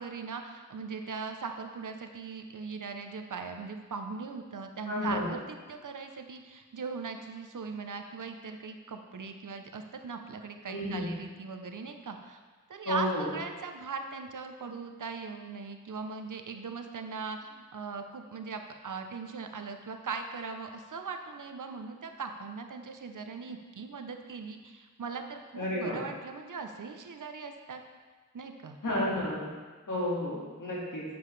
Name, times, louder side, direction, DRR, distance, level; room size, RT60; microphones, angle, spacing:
voice 1, 0.0-12.4 12.7-27.8 28.3-28.8, right 5 dB, 75° right, 5 dB, 0.7 m, -40 dB
voice 2, 4.9-5.3 10.7-11.1 12.8-13.3 25.6-26.0 28.8-29.5 29.9-31.0, left 1 dB, 80° left, -5 dB, 2.0 m, -31 dB
7.6 x 7.0 x 3.3 m, 1.4 s
cardioid pair, 45°, 31 cm